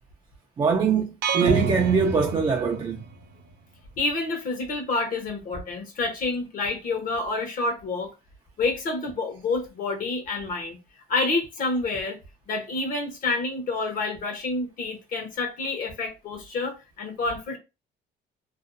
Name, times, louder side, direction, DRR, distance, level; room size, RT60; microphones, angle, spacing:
voice 1, 0.6-3.0, right 5 dB, 25° right, 0.4 m, -23 dB
sound 1, 1.2-3.2, right 5 dB, 85° right, 0.5 m, -28 dB
voice 2, 4.0-8.1 8.6-10.8 11.1-12.2 12.5-17.6, left 3 dB, 55° left, 0.9 m, -28 dB
2.6 x 2.1 x 2.5 m
cardioid pair, 110°, 17 cm